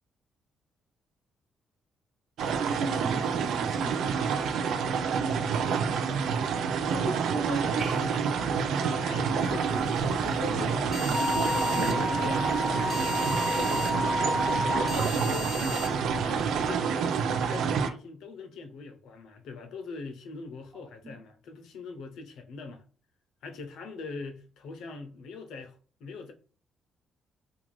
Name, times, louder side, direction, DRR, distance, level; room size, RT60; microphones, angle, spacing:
sound 1, 2.4-17.9, right 6 dB, 75° right, 0.4 m, -28 dB
voice 1, 2.6-3.9 6.9-8.2 21.0-21.1, right 3 dB, 55° right, 1.0 m, -34 dB
voice 2, 8.8-12.5 12.8-13.0 13.5-13.9 14.7-22.8 23.4-26.3, left 4 dB, 80° left, 0.6 m, -41 dB
sound 2, 9.4-16.7, left 3 dB, 40° left, 0.5 m, -39 dB
Wind instrument woodwind instrument, 11.1-15.0, left 1 dB, 35° right, 1.0 m, -30 dB
2.5 x 2.3 x 3.1 m
cardioid pair, 90°, 0 cm